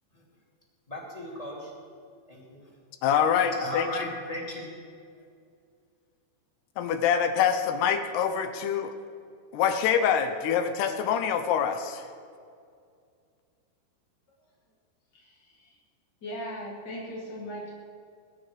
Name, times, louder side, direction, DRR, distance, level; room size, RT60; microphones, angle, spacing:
voice 1, 0.9-1.6 2.3-2.6 3.6-4.7, left 2 dB, 10° left, -3 dB, 2.1 m, -35 dB
voice 2, 3.0-4.1 6.8-8.9 9.5-12.1, left 8 dB, 80° left, 8 dB, 2.8 m, -25 dB
voice 3, 15.1-15.7 16.2-17.8, equal, 40° left, -4 dB, 1.6 m, -39 dB
21.5 x 9.8 x 5.2 m, 2.3 s
omnidirectional pair, 4.8 m